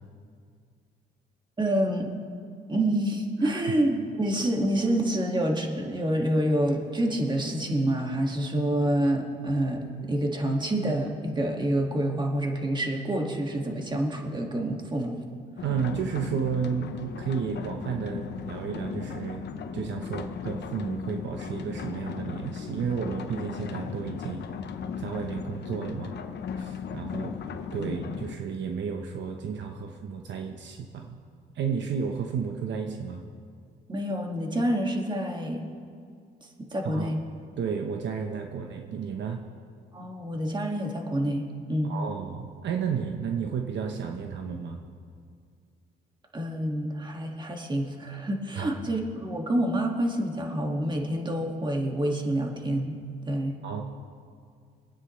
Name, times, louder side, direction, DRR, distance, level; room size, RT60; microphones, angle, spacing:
voice 1, 1.6-2.1 2.7-15.2 27.1-27.4 27.8-28.0 33.9-35.7 36.6-37.2 39.9-42.0 46.3-53.0 53.3-53.6, right 1 dB, 25° right, 1 dB, 2.0 m, -27 dB
sound 1, 15.6-28.4, left 7 dB, 60° left, 0.8 m, -37 dB
voice 2, 15.6-19.4 19.7-24.7 25.0-26.2 26.6-27.3 27.7-31.2 31.5-33.3 36.8-37.1 37.6-39.4 41.8-44.8 48.6-48.7 53.6-53.8, right 6 dB, 65° right, 3 dB, 1.0 m, -32 dB
24.5 x 9.3 x 3.2 m, 2.2 s
cardioid pair, 90°, 20 cm